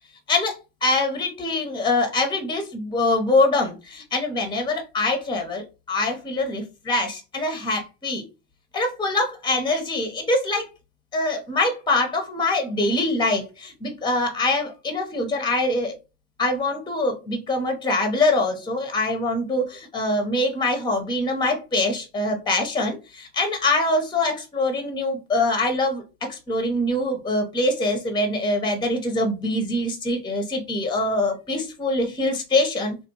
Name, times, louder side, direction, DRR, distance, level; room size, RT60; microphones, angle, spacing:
voice 1, 0.3-8.2 8.7-10.6 11.1-15.9 16.4-33.0, left 2 dB, 10° left, 0.8 m, -24 dB
3.3 x 2.3 x 2.9 m
figure-of-eight pair, 70°, 37 cm